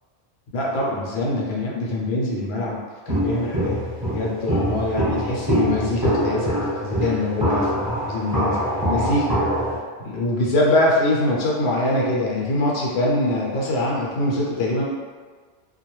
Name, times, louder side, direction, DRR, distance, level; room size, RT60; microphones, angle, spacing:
voice 1, 0.5-2.8 3.1-3.8 4.1-6.5 6.8-9.3 10.0-14.8, left 1 dB, 60° left, -3 dB, 0.8 m, -23 dB
Walk footsteps, 3.1-9.8, equal, 20° right, 1.0 m, -24 dB
2.4 x 2.3 x 3.0 m, 1.5 s
omnidirectional pair, 1.3 m